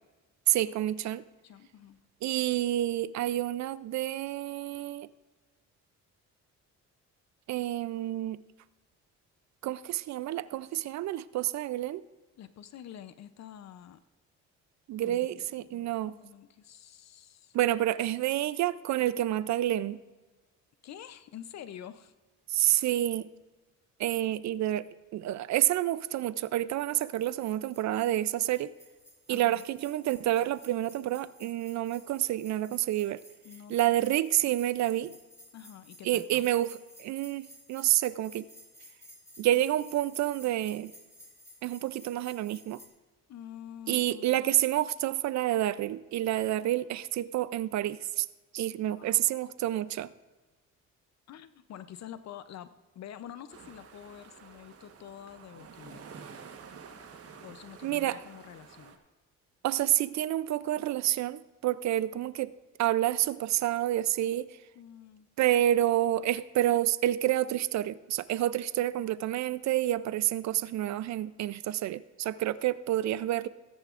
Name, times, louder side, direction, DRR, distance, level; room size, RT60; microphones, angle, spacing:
voice 1, 0.5-1.2 2.2-5.1 7.5-8.4 9.6-12.0 14.9-16.1 17.5-20.0 22.5-23.3 24.0-28.7 29.3-33.2 33.7-35.1 36.0-38.5 39.4-40.9 41.6-42.8 43.9-48.3 48.5-50.1 57.8-58.2 59.6-62.5 62.8-64.6 65.4-73.5, right 13 dB, 65° right, 17 dB, 0.4 m, -29 dB
voice 2, 1.4-2.0 12.4-14.0 15.0-17.6 20.8-22.1 24.2-24.4 29.3-29.6 33.4-34.1 34.4-34.5 35.5-36.5 43.3-44.6 48.8-49.7 51.3-52.7 52.9-56.0 57.4-59.0 62.1-62.3 64.8-65.3, left 10 dB, 60° left, 12 dB, 0.6 m, -48 dB
sound 1, 26.9-42.9, equal, 10° left, 2.1 m, -55 dB
sound 2, 53.5-59.0, right 6 dB, 50° right, 1.2 m, -50 dB
17.5 x 10.0 x 2.5 m, 1.2 s
cardioid pair, 90°, 30 cm